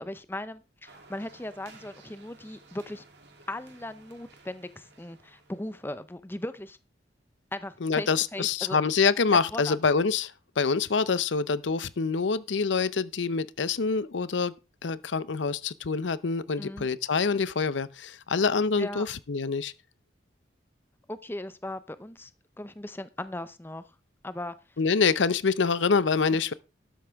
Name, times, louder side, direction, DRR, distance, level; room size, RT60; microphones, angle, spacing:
voice 1, 0.0-3.0 3.5-6.8 7.5-8.8 9.5-9.8 16.6-16.9 18.8-19.1 21.1-22.3 22.6-23.9 24.2-24.6, left 1 dB, 10° left, 0.6 m, -38 dB
sound 1, 0.9-5.9, right 3 dB, 65° right, 2.8 m, -55 dB
voice 2, 7.8-14.5 14.8-19.7 24.8-26.5, left 5 dB, 80° left, 0.6 m, -26 dB
13.0 x 10.5 x 3.5 m
head